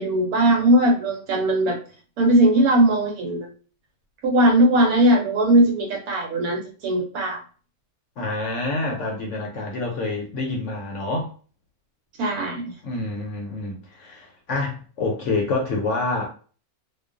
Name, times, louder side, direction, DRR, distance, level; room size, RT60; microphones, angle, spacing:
voice 1, 0.0-1.8 2.2-3.5 4.2-7.4 12.2-12.7, right 1 dB, 80° right, 1.0 m, -19 dB
voice 2, 8.2-11.3 12.8-16.3, left 2 dB, 65° left, 0.8 m, -27 dB
2.4 x 2.2 x 2.4 m
omnidirectional pair, 1.5 m